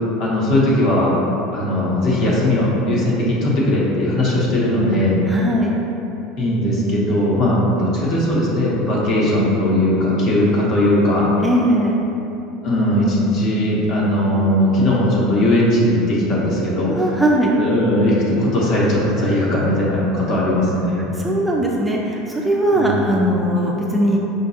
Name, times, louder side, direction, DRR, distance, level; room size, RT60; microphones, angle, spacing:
voice 1, 0.2-1.1 1.5-5.2 6.4-11.3 12.6-16.9 17.6-21.2 22.7-23.1, left 1 dB, 50° left, -5 dB, 0.9 m, -18 dB
voice 2, 5.3-5.8 11.4-12.0 16.9-17.5 21.2-24.2, right 1 dB, 10° right, -2 dB, 0.3 m, -19 dB
5.0 x 2.3 x 2.7 m, 2.9 s
supercardioid pair, 105°, 0 cm